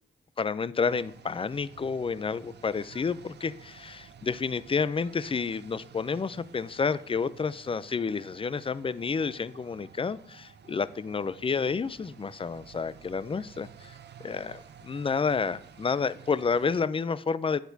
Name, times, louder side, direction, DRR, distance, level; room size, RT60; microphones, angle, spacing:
voice 1, 0.4-13.9 14.2-17.6, left 5 dB, 30° left, 17 dB, 0.4 m, -30 dB
sound 1, 0.9-16.9, right 8 dB, 60° right, 0.5 m, -52 dB
10.0 x 8.2 x 2.7 m, 0.63 s
cardioid pair, 55°, 20 cm